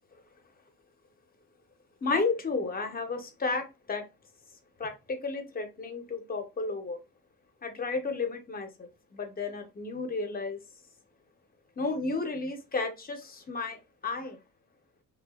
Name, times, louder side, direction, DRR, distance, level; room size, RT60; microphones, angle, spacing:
voice 1, 2.0-4.0 4.8-7.0 7.6-10.6 11.8-13.8 14.0-14.4, left 3 dB, 30° left, 6 dB, 0.6 m, -32 dB
2.5 x 2.2 x 2.3 m, 0.27 s
cardioid pair, 90°, 30 cm